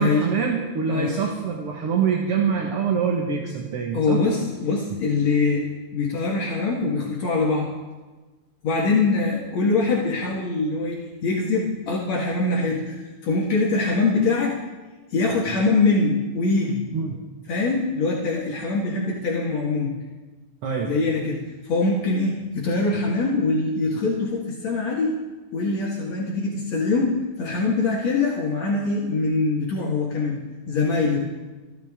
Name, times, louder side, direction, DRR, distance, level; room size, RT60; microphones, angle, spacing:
voice 1, 0.0-4.2 16.9-17.2 20.6-21.0, right 6 dB, 55° right, 0 dB, 2.3 m, -24 dB
voice 2, 3.9-5.7 5.9-7.7 8.6-14.6 15.1-16.8 17.5-19.9 20.8-25.1 25.5-30.4 30.7-31.2, left 3 dB, 65° left, -4 dB, 2.9 m, -23 dB
26.5 x 12.0 x 3.7 m, 1.3 s
omnidirectional pair, 3.4 m